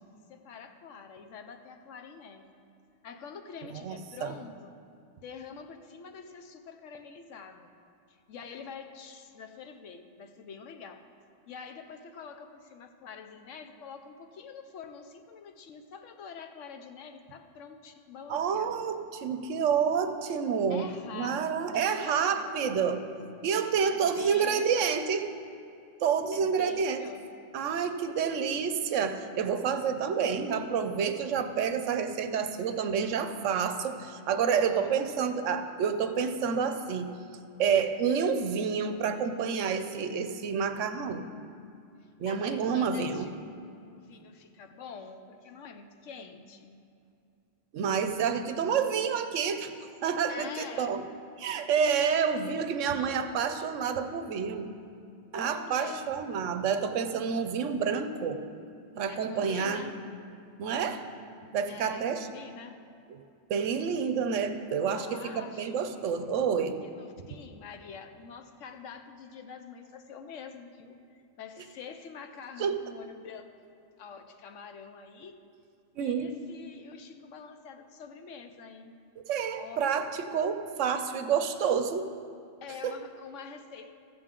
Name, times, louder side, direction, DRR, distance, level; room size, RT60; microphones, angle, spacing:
voice 1, 0.3-2.5 3.0-4.7 5.2-7.7 8.1-11.1 11.5-18.8 20.7-22.5 23.8-25.0 26.3-27.5 28.0-28.2 34.5-35.0 42.2-43.3 43.9-46.8 50.3-50.9 55.3-56.1 59.1-60.0 61.7-62.8 64.9-65.7 66.8-73.7 74.0-75.4 76.0-79.0 79.6-79.8 82.6-83.9, left 6 dB, 75° left, 6 dB, 1.1 m, -46 dB
voice 2, 3.8-4.3 18.3-20.9 21.1-23.1 23.4-25.2 26.0-27.0 27.5-37.1 37.6-41.2 42.2-43.3 47.7-49.7 50.0-51.1 51.4-54.7 55.3-58.4 59.0-59.9 60.6-61.0 61.5-62.3 63.5-66.8 72.6-72.7 76.0-76.3 79.3-82.1 82.8-82.9, right 6 dB, 75° right, 9 dB, 1.0 m, -29 dB
15.0 x 7.8 x 3.7 m, 2.5 s
omnidirectional pair, 1.3 m